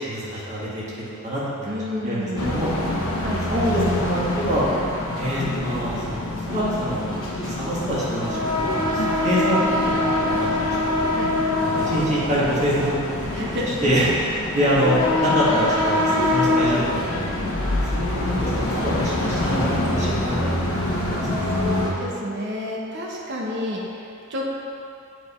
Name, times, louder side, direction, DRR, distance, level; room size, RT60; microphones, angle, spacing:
voice 1, 0.0-1.8 2.0-2.7 3.5-4.6 5.2-7.1 7.4-10.6 10.8-11.1 11.6-13.4 13.8-17.4 17.9-21.6, equal, 35° right, -8 dB, 1.7 m, -25 dB
voice 2, 1.6-2.6 3.2-3.4 11.1-11.3 13.3-13.7 20.7-24.0 24.3-24.6, left 1 dB, 55° right, -3 dB, 1.0 m, -30 dB
sound 1, 2.4-21.9, left 1 dB, 75° left, 1.2 m, -24 dB
7.9 x 4.5 x 4.3 m, 2.5 s
head